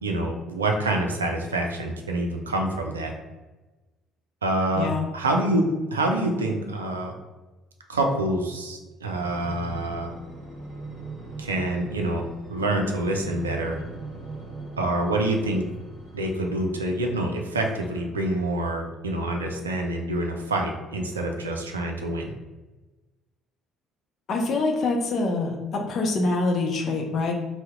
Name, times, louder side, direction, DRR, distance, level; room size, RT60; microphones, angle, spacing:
voice 1, 0.0-3.1 4.4-5.6 5.9-7.1 7.9-10.1 11.4-13.8 14.8-15.6 16.1-22.3, right 1 dB, 85° right, 2 dB, 0.3 m, -26 dB
voice 2, 4.7-5.1 24.3-27.3, left 3 dB, 50° left, 1 dB, 0.6 m, -25 dB
sound 1, 9.1-17.1 17.7-18.9 19.6-19.7, right 2 dB, 40° right, 1.3 m, -41 dB
2.8 x 2.1 x 3.5 m, 1.2 s
figure-of-eight pair, 50°, 0 cm